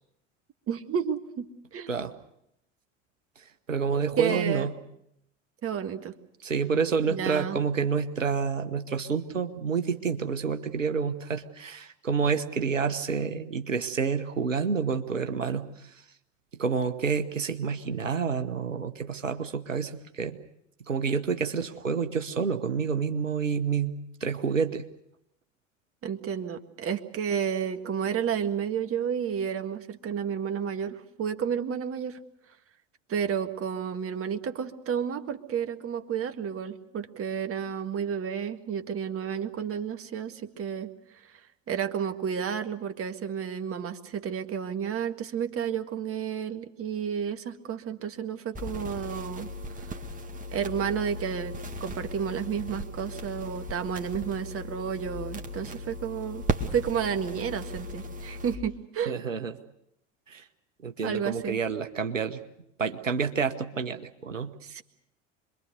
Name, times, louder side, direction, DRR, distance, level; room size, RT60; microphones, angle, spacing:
voice 1, 0.7-1.9 4.2-4.7 5.6-6.1 7.1-7.6 26.0-32.2 33.1-40.9 41.1-41.4 41.7-49.9 50.5-59.2 61.0-61.6 64.6-64.8, right 8 dB, 35° right, 8 dB, 1.8 m, -31 dB
voice 2, 3.4-4.7 6.4-15.9 16.5-20.4 20.9-24.9 59.1-59.6 60.3-60.4 60.8-62.4 62.8-64.5, right 5 dB, 90° right, 8 dB, 1.1 m, -29 dB
sound 1, 48.5-58.6, equal, 20° right, 2.2 m, -36 dB
26.5 x 22.5 x 6.7 m, 0.80 s
figure-of-eight pair, 70°, 37 cm